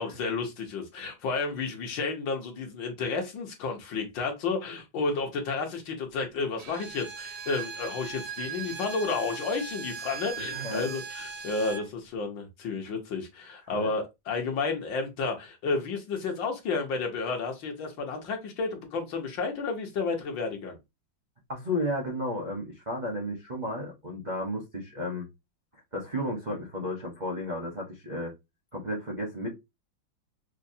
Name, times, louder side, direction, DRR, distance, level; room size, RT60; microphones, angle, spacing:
voice 1, 0.0-20.8, left 4 dB, 70° left, 1.5 m, -31 dB
Bowed string instrument, 6.6-11.9, right 6 dB, 75° right, 1.1 m, -39 dB
voice 2, 10.4-10.9 13.7-13.9 21.5-25.3 25.9-28.3 28.7-29.5, left 1 dB, 45° right, 0.6 m, -33 dB
5.5 x 2.0 x 2.6 m
omnidirectional pair, 2.2 m